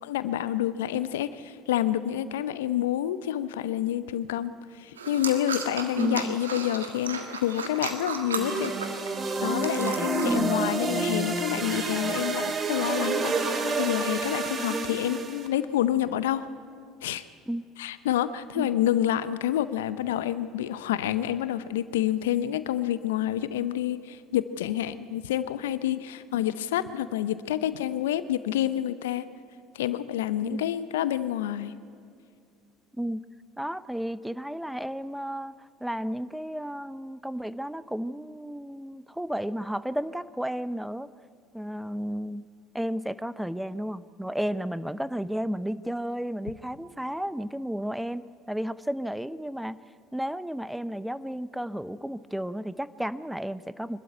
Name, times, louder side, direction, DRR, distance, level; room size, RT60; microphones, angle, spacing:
voice 1, 0.0-8.7 9.4-16.5 17.0-17.2 17.8-29.3 29.7-31.7, left 12 dB, 75° left, 15 dB, 0.7 m, -28 dB
sound 1, 5.0-10.3, right 5 dB, 85° right, 1.6 m, -35 dB
voice 2, 6.0-6.4 10.2-10.5 17.5-17.7 18.6-18.7 30.4-30.6 32.9-33.2 33.6-35.5 35.8-41.1 41.5-42.4 42.7-49.8 50.1-54.0, equal, 5° right, 16 dB, 0.7 m, -32 dB
sound 2, 8.4-15.5, right 3 dB, 35° right, 2.7 m, -29 dB
23.5 x 12.5 x 9.2 m, 2.3 s
hypercardioid pair, 65°, 0 cm